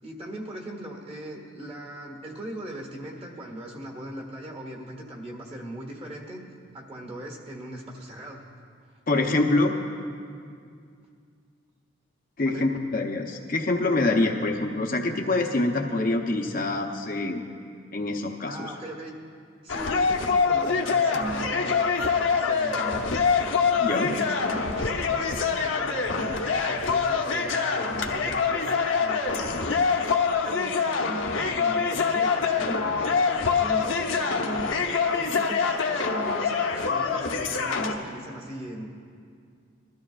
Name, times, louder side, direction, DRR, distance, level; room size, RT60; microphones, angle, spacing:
voice 1, 0.0-6.4 6.7-8.4 12.4-12.7 18.5-19.2 19.6-23.1 23.7-29.6 30.3-38.9, right 1 dB, 30° right, 0 dB, 1.6 m, -39 dB
voice 2, 9.1-9.7 12.4-17.4 17.9-18.7 23.8-24.1, left 2 dB, 45° left, 2 dB, 0.7 m, -25 dB
sound 1, 19.7-38.0, left 5 dB, 70° left, 0.9 m, -25 dB
21.0 x 13.0 x 2.4 m, 2.3 s
head